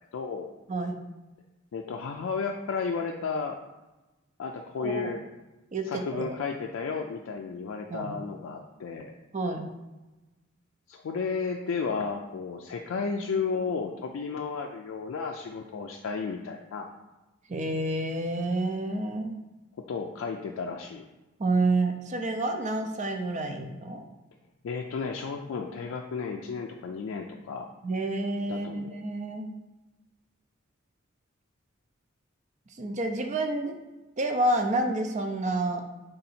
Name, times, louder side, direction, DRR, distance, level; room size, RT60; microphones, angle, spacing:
voice 1, 0.1-0.5 1.7-3.6 4.4-5.2 5.9-9.1 10.9-16.9 19.8-21.1 24.6-27.7 28.5-28.9, left 5 dB, 85° left, 1 dB, 0.3 m, -33 dB
voice 2, 4.8-5.1 5.7-6.4 7.9-8.1 9.3-9.6 17.5-19.3 21.4-24.0 27.8-29.5 32.8-33.8 34.2-35.8, right 2 dB, 35° right, 5 dB, 0.5 m, -29 dB
3.8 x 2.8 x 4.2 m, 1.1 s
head